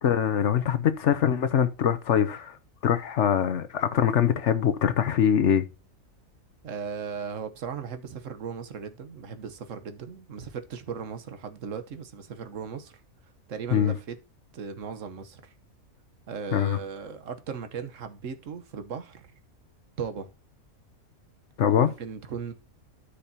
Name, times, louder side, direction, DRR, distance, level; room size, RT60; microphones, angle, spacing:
voice 1, 0.0-2.6 2.8-5.6 13.7-13.9 16.5-16.8 21.6-21.9, left 9 dB, 60° left, 1.0 m, -23 dB
voice 2, 6.6-13.0 13.5-14.2 14.5-15.5 16.3-19.3 20.0-20.3 21.8-22.5, right 6 dB, 65° right, 1.4 m, -37 dB
13.0 x 5.1 x 2.8 m
omnidirectional pair, 1.5 m